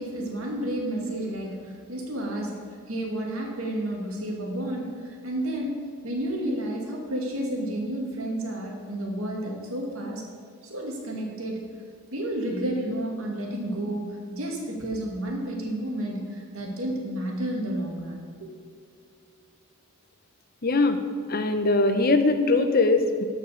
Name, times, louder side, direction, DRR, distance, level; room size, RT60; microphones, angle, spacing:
voice 1, 0.0-2.5 2.9-5.8 6.0-10.3 10.6-11.6 12.1-18.5, right 1 dB, 70° right, -1 dB, 2.2 m, -31 dB
voice 2, 20.6-21.0 21.3-23.2, left 3 dB, 40° left, 8 dB, 0.7 m, -21 dB
13.0 x 5.4 x 7.0 m, 2.2 s
head